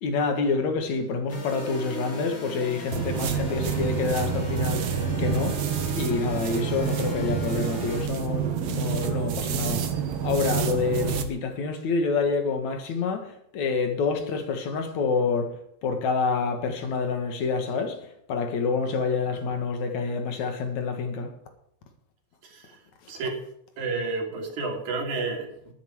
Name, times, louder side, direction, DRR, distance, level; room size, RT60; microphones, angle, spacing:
voice 1, 0.0-4.9 5.2-5.6 5.9-9.9 10.2-15.5 15.8-18.0 18.3-21.3, left 4 dB, 75° left, 3.1 m, -27 dB
sound 1, 1.3-8.0, right 1 dB, 25° left, 3.8 m, -37 dB
sound 2, 2.9-11.3, right 7 dB, 65° right, 2.0 m, -28 dB
voice 2, 22.4-22.8 23.1-23.4 23.8-25.7, right 3 dB, 90° right, 4.1 m, -31 dB
12.5 x 10.0 x 4.7 m
omnidirectional pair, 3.3 m